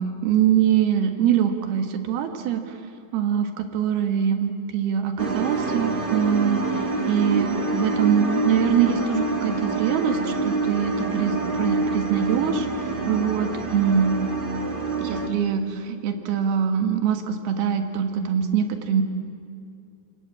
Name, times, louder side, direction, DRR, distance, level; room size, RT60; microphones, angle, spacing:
voice 1, 0.0-2.8 3.1-12.7 13.1-14.2 15.0-19.0, right 8 dB, 80° right, 7 dB, 3.5 m, -23 dB
sound 1, 5.2-15.3, right 3 dB, 50° right, 0.6 m, -26 dB
27.0 x 22.5 x 8.6 m, 2.4 s
omnidirectional pair, 4.4 m